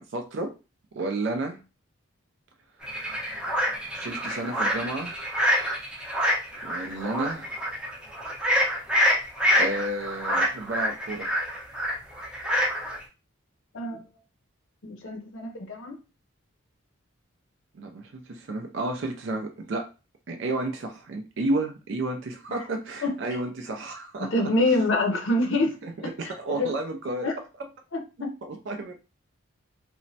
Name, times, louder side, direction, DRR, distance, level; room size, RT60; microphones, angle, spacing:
voice 1, 0.1-0.5 0.9-1.6 3.9-5.2 6.6-7.7 9.5-11.3 17.7-19.9 20.3-24.5 25.8-27.3 28.4-29.0, right 2 dB, 60° right, 0.4 m, -31 dB
sound 1, 2.8-13.0, equal, 5° right, 0.6 m, -26 dB
voice 2, 13.7-14.0 14.8-16.0 22.5-22.6 23.0-23.1 24.2-25.8 26.2-26.7 27.2-27.4 27.9-28.3, left 2 dB, 65° left, 0.6 m, -26 dB
3.0 x 2.1 x 2.6 m
head